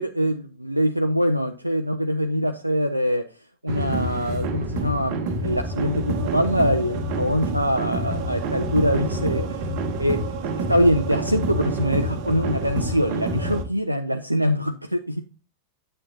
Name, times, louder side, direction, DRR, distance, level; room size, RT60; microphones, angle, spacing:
voice 1, 0.0-3.2 3.6-9.7 10.0-10.2 10.7-15.2, equal, 90° right, 6 dB, 0.5 m, -23 dB
sound 1, 3.7-13.6, right 2 dB, 40° right, 1.3 m, -27 dB
8.8 x 7.6 x 2.7 m, 0.32 s
figure-of-eight pair, 90°, 0 cm